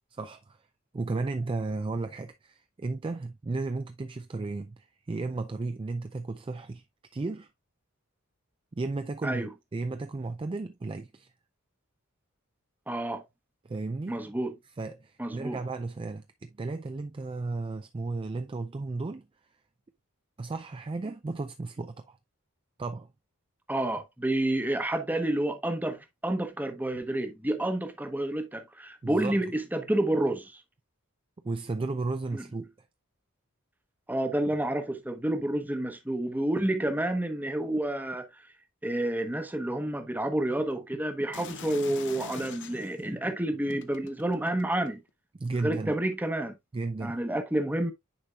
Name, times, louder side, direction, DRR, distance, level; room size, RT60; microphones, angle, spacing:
voice 1, 0.1-0.6 0.9-6.8 7.1-7.5 8.8-11.3 13.6-14.2 14.8-19.3 20.4-22.2 22.8-23.1 29.0-29.4 31.4-32.7 45.4-46.0 46.7-47.2, right 3 dB, 25° right, 0.4 m, -34 dB
voice 2, 12.9-13.2 14.1-14.5 15.2-15.6 23.7-30.6 32.3-32.4 34.1-38.3 38.8-45.0 45.6-46.5 47.0-47.9, right 1 dB, 10° right, 0.9 m, -29 dB
sound 1, 41.3-43.0 43.7-45.1 45.9-46.1, left 6 dB, 55° left, 0.7 m, -44 dB
10.0 x 4.4 x 2.4 m
head